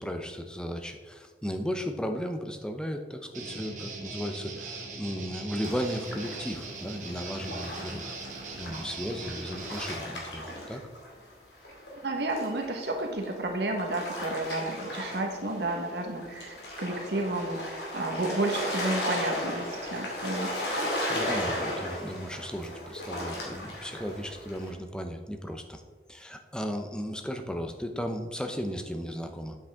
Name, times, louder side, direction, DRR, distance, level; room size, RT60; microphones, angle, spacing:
voice 1, 0.0-8.1 8.6-10.8 20.8-25.8 26.1-29.6, equal, 5° left, 5 dB, 0.6 m, -35 dB
Guitar, 3.3-10.0, right 3 dB, 45° right, 1.3 m, -40 dB
sound 1, 5.6-11.3 11.6-24.7, left 1 dB, 70° left, 2.5 m, -36 dB
voice 2, 12.0-20.5, right 2 dB, 70° right, 2 dB, 1.3 m, -31 dB
8.9 x 7.7 x 3.6 m, 1.5 s
head